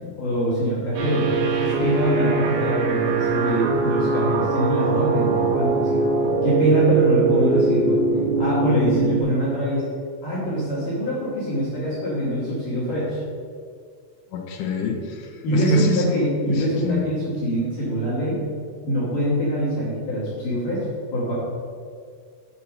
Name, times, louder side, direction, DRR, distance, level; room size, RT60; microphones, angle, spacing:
voice 1, 0.2-1.3 1.6-6.0 6.4-8.0 8.4-9.8 10.2-13.2 15.4-18.4 18.8-20.8 21.1-21.3, equal, 55° left, -9 dB, 2.9 m, -23 dB
sound 1, 0.9-9.2, right 4 dB, 75° right, 3.3 m, -22 dB
voice 2, 14.3-16.2 16.5-17.0, left 6 dB, 75° left, 2 dB, 2.9 m, -26 dB
7.9 x 5.5 x 6.0 m, 2.1 s
omnidirectional pair, 5.5 m